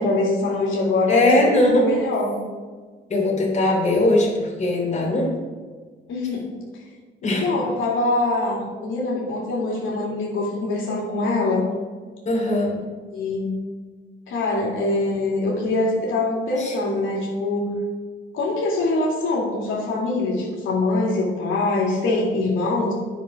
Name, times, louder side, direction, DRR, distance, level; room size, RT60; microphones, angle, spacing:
voice 1, 0.0-2.4 6.1-6.5 7.2-11.7 12.7-12.8 13.1-13.5 14.3-17.8 18.3-22.9, left 2 dB, 80° left, -3 dB, 2.5 m, -23 dB
voice 2, 1.1-1.9 3.1-5.3 7.2-7.5 12.2-12.8 16.6-16.7, left 1 dB, 35° left, -2 dB, 2.9 m, -20 dB
9.4 x 6.1 x 4.9 m, 1.5 s
cardioid pair, 90°, 20 cm